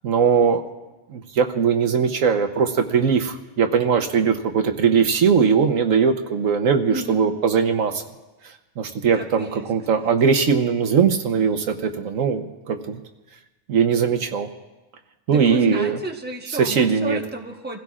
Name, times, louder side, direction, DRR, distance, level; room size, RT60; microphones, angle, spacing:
voice 1, 0.0-0.6 1.1-8.0 8.8-13.0 13.7-14.5 15.3-16.0 16.6-17.2, right 6 dB, 70° right, 5 dB, 1.2 m, -20 dB
voice 2, 6.9-7.3 9.1-9.7 9.9-10.1 15.3-17.8, right 1 dB, 10° right, 1 dB, 1.0 m, -33 dB
28.0 x 16.5 x 2.4 m, 1.1 s
omnidirectional pair, 1.5 m